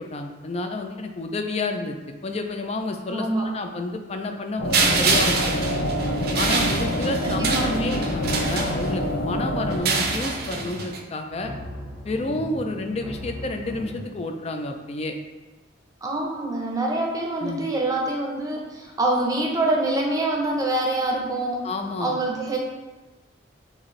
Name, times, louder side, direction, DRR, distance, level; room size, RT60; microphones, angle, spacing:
voice 1, 0.0-2.0 2.2-5.8 6.4-11.5 12.0-15.2 17.4-17.6 21.6-22.2, left 2 dB, 35° left, 5 dB, 0.4 m, -30 dB
voice 2, 3.1-3.5 7.2-7.8 16.0-21.6 22.0-22.6, right 2 dB, 20° right, -1 dB, 0.7 m, -25 dB
sound 1, 4.6-9.8, equal, 85° left, 0.6 m, -26 dB
sound 2, 4.7-9.2 9.7-11.0, right 4 dB, 55° right, 0.5 m, -26 dB
sound 3, 6.6-7.7 8.1-9.3 9.7-10.9 11.3-14.1, equal, ahead, 1.0 m, -37 dB
6.4 x 2.5 x 3.1 m, 1.2 s
head